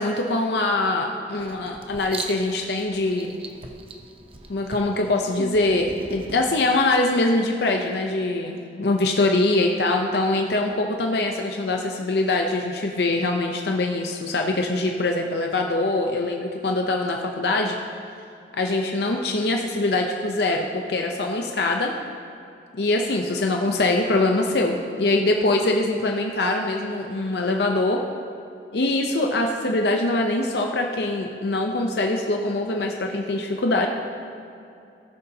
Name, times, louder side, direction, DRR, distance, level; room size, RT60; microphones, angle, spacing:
voice 1, 0.0-3.3 4.5-17.8 18.5-21.9 22.7-28.0 28.7-33.9, left 2 dB, 65° left, 2 dB, 0.6 m, -23 dB
Writing, 1.4-6.6, right 3 dB, 30° right, 0.6 m, -39 dB
18.0 x 6.7 x 2.8 m, 2.7 s
head